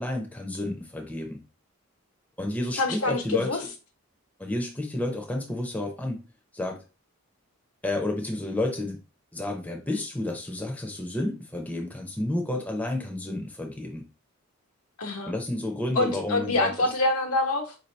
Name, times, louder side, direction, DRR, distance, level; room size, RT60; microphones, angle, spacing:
voice 1, 0.0-1.4 2.4-3.7 4.4-6.2 6.5-6.8 7.8-9.0 9.3-14.0 15.3-16.7, left 1 dB, 5° left, 0.6 m, -31 dB
voice 2, 2.8-3.6 15.0-15.3 15.9-17.7, left 2 dB, 85° left, 1.0 m, -26 dB
4.8 x 2.7 x 3.2 m
head